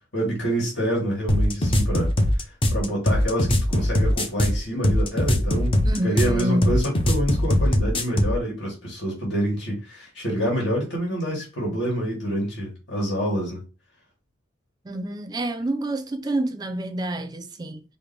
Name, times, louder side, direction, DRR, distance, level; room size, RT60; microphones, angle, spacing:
voice 1, 0.1-2.1 2.4-5.8 6.0-13.6, right 1 dB, 80° left, 1.9 m, -27 dB
sound 1, 1.3-8.4, left 1 dB, 30° left, 0.6 m, -21 dB
voice 2, 5.8-6.7 14.8-17.8, right 1 dB, 20° right, 0.5 m, -28 dB
5.1 x 2.1 x 3.3 m
head